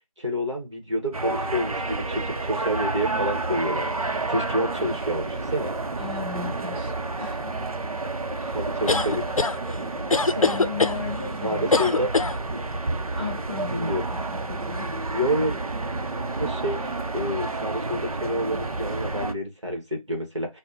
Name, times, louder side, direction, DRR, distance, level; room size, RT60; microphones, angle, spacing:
voice 1, 0.2-3.9 4.3-5.7 8.5-9.2 11.4-12.1 12.5-12.6 13.7-14.1 15.1-15.6 16.4-16.8 17.1-20.6, equal, 55° right, 1.2 m, -28 dB
sound 1, 1.1-19.3, right 3 dB, 80° right, 0.7 m, -30 dB
voice 2, 6.0-7.5 8.3-8.6 8.8-9.0 10.2-11.6 13.2-14.4 14.7-14.9, left 4 dB, 20° right, 1.3 m, -35 dB
sound 2, 8.9-9.5 10.1-11.0 11.7-12.3, left 3 dB, 70° left, 0.5 m, -21 dB
3.5 x 2.1 x 2.5 m
figure-of-eight pair, 180°, 18 cm